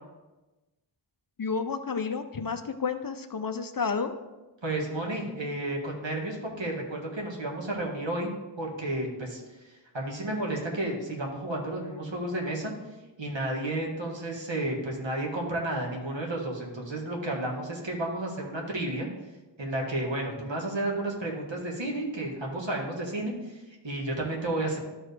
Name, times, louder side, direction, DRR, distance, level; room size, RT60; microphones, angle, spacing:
voice 1, 1.4-4.1, left 5 dB, 45° left, 8 dB, 0.6 m, -31 dB
voice 2, 4.6-8.3 8.6-9.4 9.9-12.7 13.2-19.1 19.6-23.3 23.8-24.8, right 1 dB, 65° right, -1 dB, 1.8 m, -32 dB
12.5 x 4.7 x 3.4 m, 1.1 s
wide cardioid pair, 55°, 47 cm